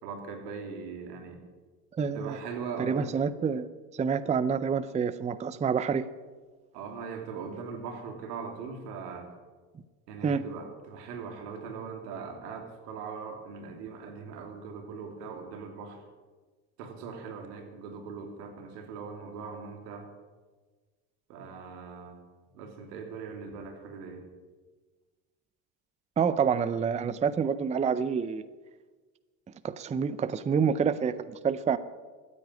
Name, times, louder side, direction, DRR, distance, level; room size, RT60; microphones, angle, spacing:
voice 1, 0.0-1.4 2.1-3.1 6.7-9.3 10.1-16.0 16.8-20.1 21.3-22.2 22.5-24.2, right 5 dB, 85° right, 5 dB, 3.1 m, -40 dB
voice 2, 1.9-2.4 2.8-3.7 3.9-6.0 10.2-10.4 26.2-28.4 29.6-31.8, right 6 dB, 15° right, 16 dB, 0.5 m, -27 dB
14.0 x 9.4 x 9.4 m, 1.4 s
supercardioid pair, 100°, 46 cm